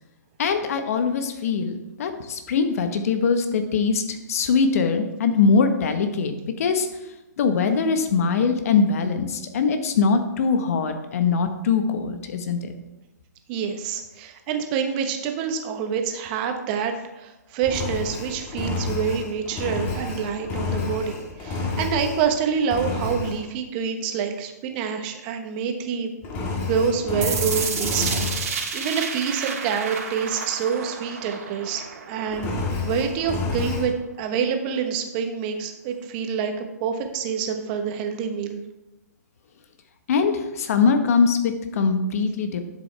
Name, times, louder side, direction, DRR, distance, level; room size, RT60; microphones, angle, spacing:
voice 1, 0.4-6.9 7.4-12.7 40.1-42.6, left 5 dB, 55° left, 7 dB, 1.3 m, -22 dB
voice 2, 13.5-21.1 21.4-26.1 26.6-31.8 32.1-32.5 32.8-36.5 36.8-38.6, right 7 dB, 30° right, 5 dB, 1.2 m, -27 dB
Engine, 17.6-22.3 22.7-23.4 26.2-28.5 32.3-33.9, left 3 dB, 25° left, 1.7 m, -29 dB
sound 1, 27.2-33.2, right 6 dB, 55° right, 2.0 m, -31 dB
10.5 x 7.5 x 3.4 m, 1.0 s
hypercardioid pair, 135°, 10 cm